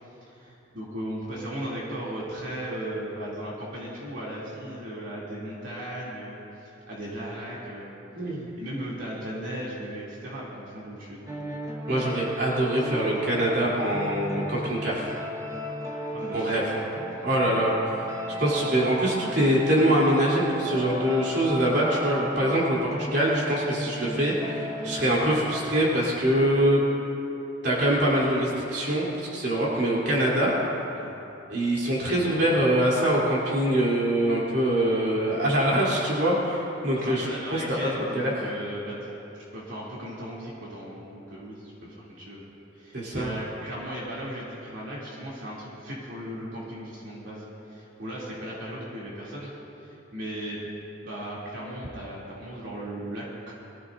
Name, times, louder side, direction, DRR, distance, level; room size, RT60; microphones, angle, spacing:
voice 1, 0.2-7.9 8.2-11.5 16.1-16.8 30.9-31.1 36.9-39.1 39.5-42.5 42.7-47.4 47.7-49.5 49.8-50.7 51.0-53.5, right 1 dB, 75° right, -7 dB, 3.0 m, -37 dB
voice 2, 8.2-8.5 11.9-15.1 16.3-16.6 17.2-17.7 18.4-26.8 27.6-30.5 31.5-37.6 38.1-38.3 42.9-43.3, right 1 dB, 60° right, -6 dB, 3.3 m, -24 dB
sound 1, 11.3-25.8, right 1 dB, 15° right, 1.0 m, -35 dB
23.0 x 15.0 x 2.7 m, 2.9 s
head